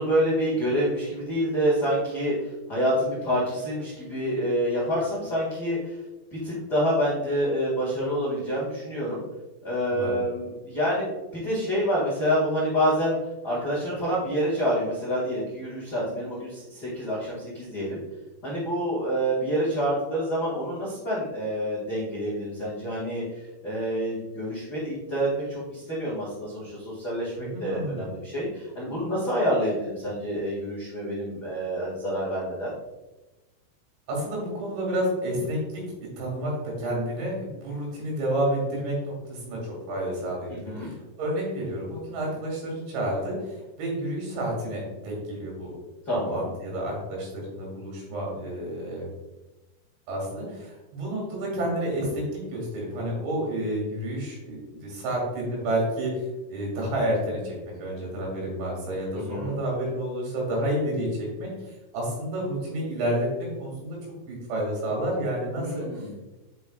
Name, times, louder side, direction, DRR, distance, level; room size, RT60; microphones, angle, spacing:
voice 1, 0.0-2.3 2.7-5.9 6.3-9.2 9.6-11.1 11.3-13.2 13.4-18.0 18.4-23.2 23.6-27.3 27.6-32.7 40.5-40.9 46.1-46.5 59.1-59.5 65.6-66.1, equal, 80° left, -8 dB, 0.9 m, -27 dB
voice 2, 9.9-10.2 27.4-28.1 34.1-35.8 36.2-36.5 36.8-45.7 46.3-49.1 50.1-64.0 64.3-65.9, right 1 dB, 80° right, -2 dB, 4.7 m, -30 dB
9.3 x 5.3 x 2.4 m, 1.1 s
omnidirectional pair, 5.2 m